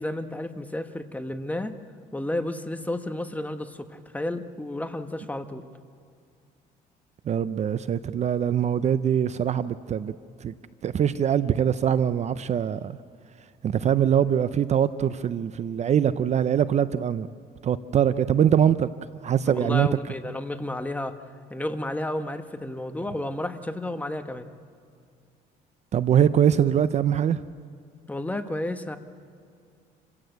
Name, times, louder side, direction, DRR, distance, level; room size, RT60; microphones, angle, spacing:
voice 1, 0.0-1.7 2.1-5.7 19.5-21.2 21.5-24.5 28.1-29.0, left 1 dB, 10° left, 1.2 m, -32 dB
voice 2, 7.3-10.1 10.4-10.5 10.8-13.0 13.6-17.3 17.6-18.9 19.2-19.9 25.9-27.4, right 9 dB, 40° right, 0.6 m, -23 dB
27.5 x 16.0 x 8.0 m
cardioid pair, 110°, 17 cm